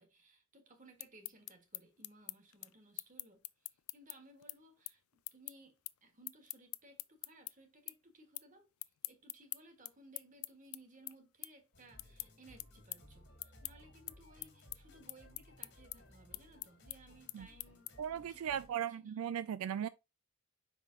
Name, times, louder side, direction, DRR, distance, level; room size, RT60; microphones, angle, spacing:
voice 1, 0.0-5.0 5.3-8.7 9.1-19.2, right 2 dB, 35° right, 1.5 m, -61 dB
sound 1, 0.8-7.5 7.9-8.5 8.8-18.2, left 20 dB, 80° left, 0.4 m, -46 dB
sound 2, 11.7-18.7, left 1 dB, 50° left, 2.0 m, -60 dB
voice 2, 18.0-19.9, right 9 dB, 80° right, 0.3 m, -37 dB
5.7 x 5.0 x 3.8 m
head